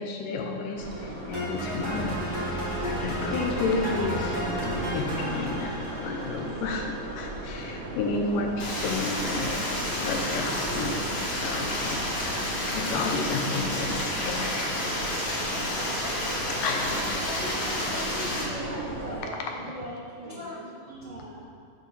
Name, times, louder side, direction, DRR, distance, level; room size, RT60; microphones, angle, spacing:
voice 1, 0.0-2.3 3.0-9.6 9.9-15.6 16.5-17.2, left 3 dB, 80° left, 2 dB, 2.4 m, -32 dB
sound 1, 0.7-19.2, right 1 dB, 40° right, 1.3 m, -37 dB
sound 2, 1.3-7.4, equal, 10° right, 1.1 m, -33 dB
Stream, 8.6-18.4, left 1 dB, 60° left, 3.2 m, -30 dB
voice 2, 16.4-16.8 17.0-17.4 18.6-21.5, right 2 dB, 90° right, -5 dB, 1.0 m, -40 dB
voice 3, 17.2-19.0 20.2-20.6 20.9-21.1, right 1 dB, 60° right, -8 dB, 1.2 m, -40 dB
13.0 x 8.0 x 2.8 m, 2.2 s
omnidirectional pair, 3.9 m